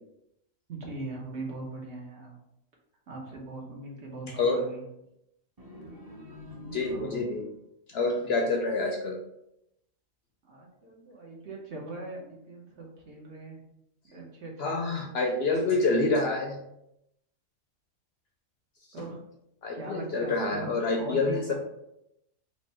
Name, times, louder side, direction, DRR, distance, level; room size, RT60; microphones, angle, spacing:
voice 1, 0.7-2.4 3.1-4.8 6.9-7.2 8.2-8.3 10.4-13.6 14.0-15.1 18.9-19.2 19.7-20.7 20.9-21.4, right 2 dB, 60° right, -1 dB, 1.2 m, -40 dB
sound 1, 5.6-7.6, equal, 25° right, 0.6 m, -44 dB
voice 2, 6.7-7.4 7.9-9.2 14.6-16.6 19.6-21.4, left 3 dB, 65° left, 2 dB, 0.7 m, -27 dB
4.7 x 2.2 x 4.1 m, 0.82 s
omnidirectional pair, 1.4 m